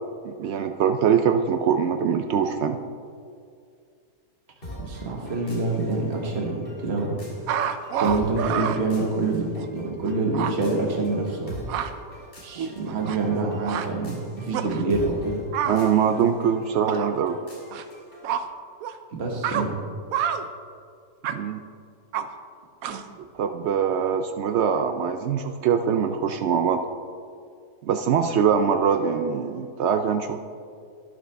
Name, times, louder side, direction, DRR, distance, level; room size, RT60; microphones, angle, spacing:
voice 1, 0.2-2.8 15.6-17.4 21.3-21.6 23.4-26.8 27.8-30.4, right 7 dB, 85° right, 7 dB, 0.6 m, -23 dB
sound 1, 4.6-18.3, equal, 35° left, 2.4 m, -44 dB
voice 2, 4.8-7.2 8.0-11.5 12.4-15.4 19.1-19.8, right 3 dB, 45° right, -1 dB, 1.6 m, -26 dB
sound 2, 7.5-8.8 9.6-9.7 10.0-10.1 10.3-10.5 11.4-11.9 12.6-13.4 13.7-13.9 14.5-14.8 15.5-15.8 16.8-17.2 17.7-17.8 18.2-18.4 18.8-18.9 19.4-19.7 20.1-20.5 21.2-21.4 22.1-22.3 22.8-23.1, right 8 dB, 70° right, 1.0 m, -27 dB
12.0 x 10.5 x 3.3 m, 2.3 s
omnidirectional pair, 1.7 m